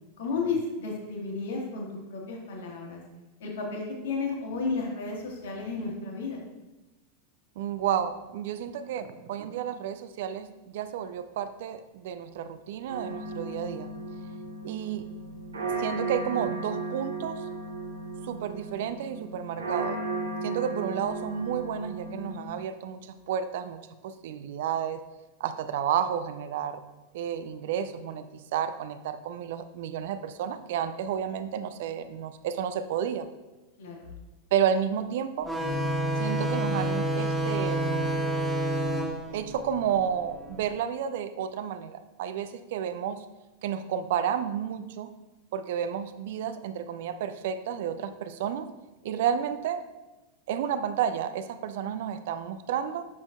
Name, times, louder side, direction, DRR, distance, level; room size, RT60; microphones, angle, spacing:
voice 1, 0.2-3.0 3.4-6.4 33.8-34.1, left 4 dB, 60° left, -1 dB, 1.7 m, -33 dB
voice 2, 7.6-10.5 10.7-13.9 14.6-15.1 15.8-17.5 18.2-20.0 20.4-23.8 24.0-25.0 25.4-26.8 27.1-33.3 34.5-35.5 36.2-38.3 39.3-43.3 43.6-45.1 45.5-48.7 49.0-49.8 50.5-53.1, right 9 dB, 55° right, 11 dB, 0.4 m, -31 dB
sound 1, 12.9-22.5, right 3 dB, 70° right, 1.1 m, -35 dB
sound 2, 35.4-40.6, right 1 dB, 10° right, 1.4 m, -29 dB
7.2 x 6.2 x 2.5 m, 1.1 s
figure-of-eight pair, 90°, 0 cm